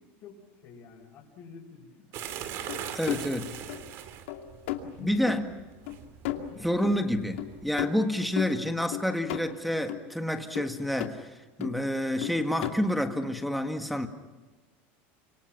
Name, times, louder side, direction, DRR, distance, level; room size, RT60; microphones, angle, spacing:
voice 1, 0.0-2.1 3.1-3.3 4.9-5.4 6.4-6.7, left 6 dB, 40° left, 5.9 m, -46 dB
sound 1, 2.1-7.7, right 10 dB, 45° right, 2.2 m, -42 dB
sound 2, 2.7-3.3 3.7-4.0 4.3-4.9 5.3-5.4 5.9-6.0 6.2-6.9 7.4-7.5 7.8-8.5 8.9-9.4 9.9-10.1 10.6-11.1 11.6-11.9 12.2-12.7, left 13 dB, 90° left, 2.5 m, -35 dB
voice 2, 2.9-3.5 5.0-5.4 6.6-14.1, left 1 dB, ahead, 1.7 m, -29 dB
30.0 x 26.0 x 6.0 m
supercardioid pair, 165°, 6 cm